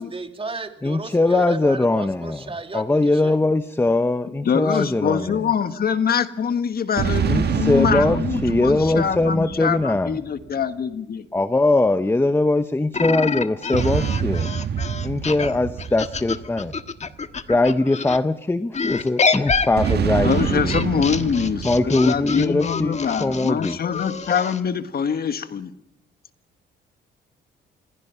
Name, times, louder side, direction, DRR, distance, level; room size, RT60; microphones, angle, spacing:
voice 1, 0.0-3.4 4.7-5.4, right 4 dB, 30° right, 2.7 m, -34 dB
voice 2, 0.8-2.4 2.7-5.4 7.3-10.2 11.3-14.5 15.0-16.7 17.5-20.7 21.6-23.8, left 2 dB, 10° left, 0.9 m, -21 dB
voice 3, 4.4-11.3 20.2-25.7, left 7 dB, 50° left, 1.5 m, -24 dB
sound 1, 7.0-10.6 13.7-17.4 19.8-23.2, right 8 dB, 55° right, 1.5 m, -27 dB
sound 2, 12.9-18.2 18.7-24.6, left 5 dB, 35° left, 1.4 m, -27 dB
27.0 x 21.5 x 5.7 m
cardioid pair, 90°, 20 cm